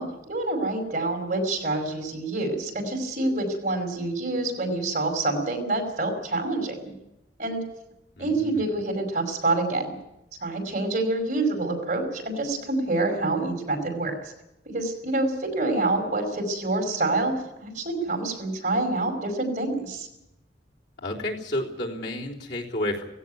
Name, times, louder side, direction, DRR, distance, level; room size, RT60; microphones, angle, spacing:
voice 1, 0.0-6.9 7.4-7.6 8.2-9.9 10.4-14.1 14.7-17.3 17.6-20.1, right 2 dB, 45° right, 3 dB, 5.3 m, -27 dB
voice 2, 8.2-8.7 21.0-23.0, left 1 dB, 75° left, -3 dB, 3.8 m, -31 dB
17.5 x 16.5 x 9.4 m, 0.87 s
head